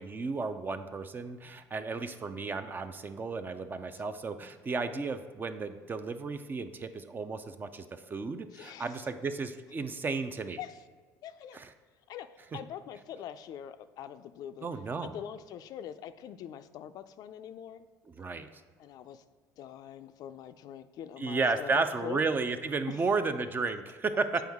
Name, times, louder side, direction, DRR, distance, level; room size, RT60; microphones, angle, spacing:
voice 1, 0.0-10.6 11.5-11.7 14.6-15.1 18.2-18.5 21.2-24.4, right 4 dB, 25° right, 10 dB, 0.4 m, -33 dB
voice 2, 8.5-9.0 10.6-10.8 11.2-11.6 12.1-14.7 15.0-17.9 18.8-19.2 19.6-22.2 22.9-23.0, left 10 dB, 60° left, 11 dB, 0.4 m, -43 dB
7.7 x 4.5 x 3.5 m, 1.5 s
cardioid pair, 105°, 7 cm